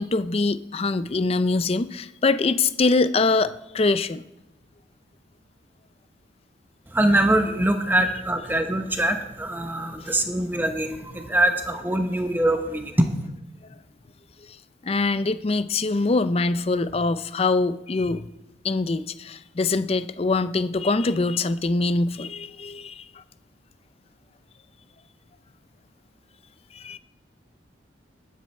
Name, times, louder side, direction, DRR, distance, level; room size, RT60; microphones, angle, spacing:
voice 1, 0.0-4.2 10.0-10.2 13.6-13.8 14.4-14.6 14.8-18.3 18.6-23.2 26.7-27.0, left 3 dB, 30° left, 13 dB, 0.4 m, -24 dB
voice 2, 6.9-13.2, right 1 dB, 10° right, 5 dB, 0.9 m, -23 dB
20.0 x 9.4 x 4.4 m, 0.97 s
head